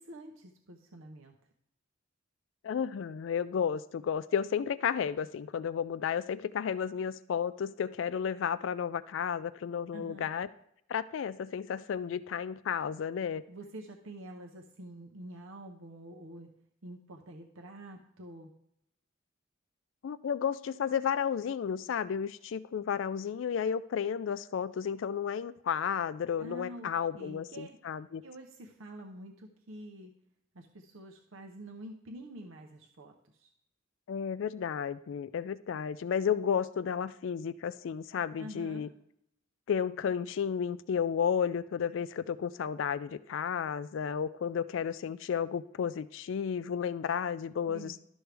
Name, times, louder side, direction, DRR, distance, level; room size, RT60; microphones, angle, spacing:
voice 1, 0.0-1.3 9.9-10.3 13.5-16.5 16.8-18.5 26.4-27.8 28.2-30.2 30.5-33.5 38.4-38.9 47.7-48.0, right 1 dB, 90° right, 2 dB, 0.8 m, -47 dB
voice 2, 2.6-10.5 10.9-13.4 20.0-28.2 34.1-38.9 39.7-48.0, left 7 dB, 70° left, 15 dB, 0.3 m, -32 dB
12.0 x 6.2 x 3.4 m, 0.75 s
head